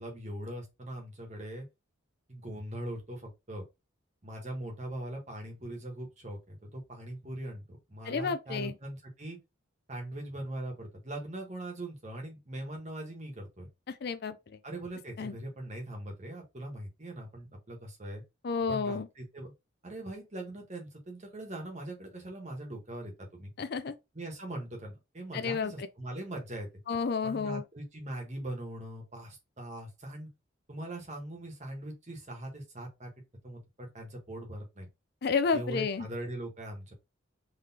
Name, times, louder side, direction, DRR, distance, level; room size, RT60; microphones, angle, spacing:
voice 1, 0.0-1.6 2.3-3.6 4.2-9.4 9.9-13.7 14.6-18.2 18.7-19.5 19.8-23.5 24.1-26.7 27.2-30.3 30.7-33.1 33.4-34.9 35.5-36.9, right 1 dB, 35° right, 1.3 m, -41 dB
voice 2, 8.1-8.7 13.9-14.6 15.2-15.3 18.4-19.1 23.6-24.0 25.3-25.9 26.9-27.6 35.2-36.1, left 5 dB, 50° left, 0.4 m, -31 dB
3.9 x 3.2 x 2.8 m
head